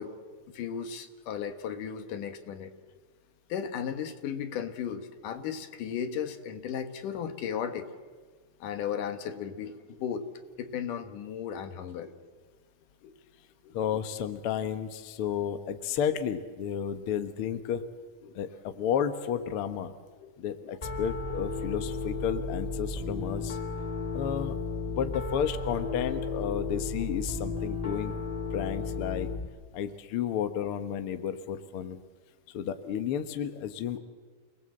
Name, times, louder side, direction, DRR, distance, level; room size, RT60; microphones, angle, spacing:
voice 1, 0.0-2.7 3.5-7.9 8.6-10.3 10.6-12.1 13.0-13.1 13.6-13.7 18.2-18.3 20.2-20.3 20.6-20.7, left 8 dB, 85° left, 8 dB, 3.0 m, -35 dB
voice 2, 13.7-17.8 18.4-19.9 20.4-23.6 24.1-24.6 24.9-28.1 28.5-29.3 29.7-32.0 32.5-34.0, left 8 dB, 55° left, 9 dB, 1.7 m, -32 dB
Piano, 20.8-29.5, left 3 dB, 15° left, 1.7 m, -34 dB
29.0 x 19.0 x 7.7 m, 1.5 s
omnidirectional pair, 3.6 m